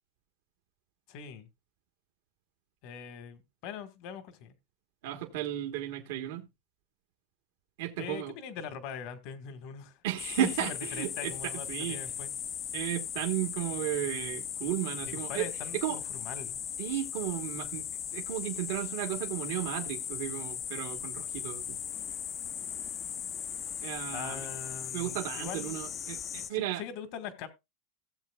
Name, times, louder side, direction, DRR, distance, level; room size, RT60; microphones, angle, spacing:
voice 1, 1.1-1.5 2.8-4.5 8.0-10.0 10.4-12.3 15.1-16.6 24.1-25.8 26.5-27.5, left 7 dB, 60° left, 1.6 m, -42 dB
voice 2, 5.0-6.5 7.8-8.3 10.0-12.0 12.7-15.5 15.8-16.0 16.8-17.8 18.1-21.8 23.8-24.4 24.9-26.8, right 13 dB, 75° right, 1.3 m, -34 dB
sound 1, 10.2-26.5, left 9 dB, 35° left, 0.5 m, -38 dB
16.5 x 7.6 x 2.3 m
supercardioid pair, 115°, 0 cm